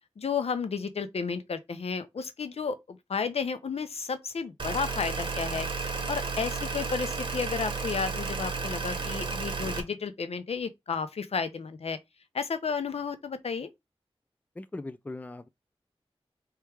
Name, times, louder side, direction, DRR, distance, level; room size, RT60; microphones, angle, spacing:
voice 1, 0.2-5.7 6.1-12.0 12.3-13.7, left 5 dB, 90° left, 0.7 m, -32 dB
sound 1, 4.6-9.8, right 4 dB, 55° right, 1.3 m, -32 dB
voice 2, 14.6-15.5, left 2 dB, 15° left, 0.4 m, -40 dB
3.4 x 3.3 x 4.7 m
wide cardioid pair, 90°, 10 cm